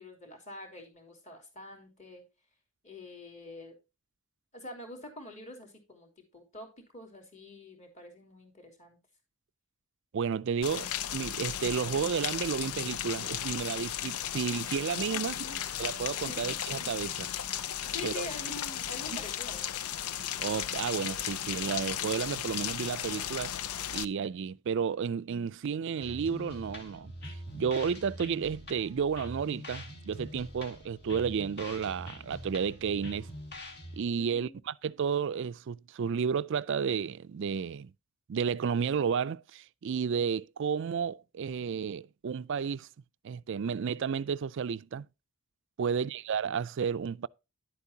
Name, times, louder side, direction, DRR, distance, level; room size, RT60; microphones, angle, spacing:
voice 1, 0.0-2.2 2.8-3.7 4.5-6.7 6.9-9.0 15.1-15.6 16.2-16.5 17.8-19.6 34.2-34.6, left 2 dB, 35° left, 3.3 m, -46 dB
voice 2, 10.1-15.4 15.8-17.3 18.0-18.3 20.4-23.5 23.9-27.1 27.5-33.3 33.9-37.9 38.3-42.9 43.2-45.1 45.8-47.3, right 6 dB, 55° right, 0.4 m, -32 dB
Rain, 10.6-24.1, left 10 dB, 90° left, 0.5 m, -35 dB
sound 1, 26.0-34.0, equal, 50° left, 2.0 m, -44 dB
11.0 x 8.2 x 2.8 m
head